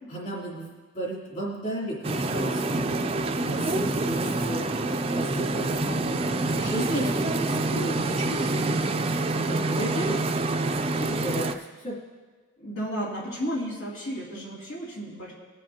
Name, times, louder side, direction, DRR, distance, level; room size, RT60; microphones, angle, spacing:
voice 1, 0.1-2.9 3.4-4.6 5.1-6.2 6.5-8.9 9.2-10.3 10.9-12.0, right 1 dB, 40° left, -6 dB, 3.1 m, -34 dB
sound 1, 2.0-11.5, right 2 dB, 30° right, 0.4 m, -27 dB
voice 2, 5.8-6.3 12.6-15.3, equal, 85° left, -6 dB, 2.5 m, -33 dB
19.5 x 7.3 x 2.8 m, 1.3 s
head